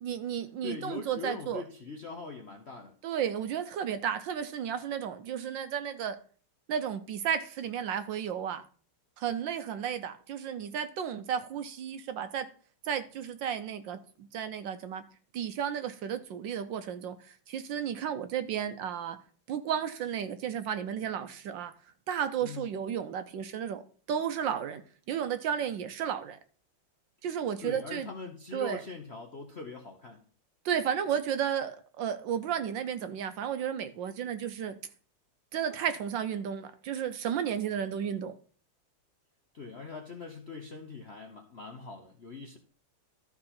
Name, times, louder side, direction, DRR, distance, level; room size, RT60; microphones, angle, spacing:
voice 1, 0.0-1.6 3.0-6.2 6.7-8.6 9.2-12.5 12.8-14.0 14.3-15.0 15.3-17.2 17.5-19.2 19.5-21.7 22.1-23.8 24.1-24.8 25.1-26.4 27.2-28.1 28.5-28.8 30.6-34.7 35.5-38.4, right 8 dB, 70° right, 1.2 m, -33 dB
voice 2, 0.6-3.0 22.4-22.7 27.6-30.2 39.5-42.6, left 4 dB, 55° left, 0.7 m, -42 dB
13.0 x 4.7 x 4.3 m
omnidirectional pair, 2.4 m